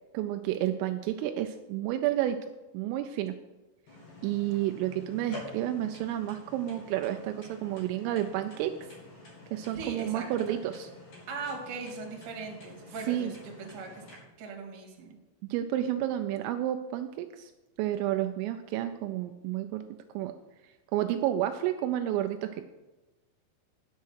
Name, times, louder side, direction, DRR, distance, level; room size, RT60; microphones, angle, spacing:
voice 1, 0.1-2.4 2.7-3.4 4.2-8.7 9.5-10.9 13.1-13.3 15.4-17.5 17.8-19.8 20.1-20.3 20.9-22.6, right 12 dB, 85° right, 7 dB, 3.1 m, -30 dB
sound 1, 3.9-14.1, left 2 dB, 45° left, 2.4 m, -49 dB
voice 2, 9.7-10.6 11.3-14.0 14.4-15.1, right 4 dB, 55° right, 0 dB, 2.7 m, -40 dB
10.5 x 6.5 x 6.3 m, 1.1 s
omnidirectional pair, 5.9 m